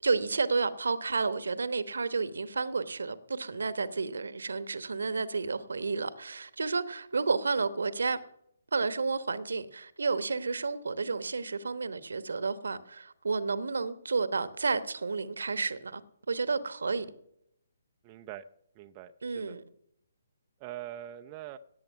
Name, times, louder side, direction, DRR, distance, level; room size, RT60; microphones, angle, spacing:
voice 1, 0.0-8.2 8.7-16.0 16.3-17.1 19.2-19.6, right 4 dB, 70° right, 1.1 m, -31 dB
voice 2, 18.0-18.4 18.7-19.6 20.6-21.6, right 12 dB, 25° right, 0.6 m, -43 dB
17.5 x 8.5 x 5.6 m
figure-of-eight pair, 135°, 0 cm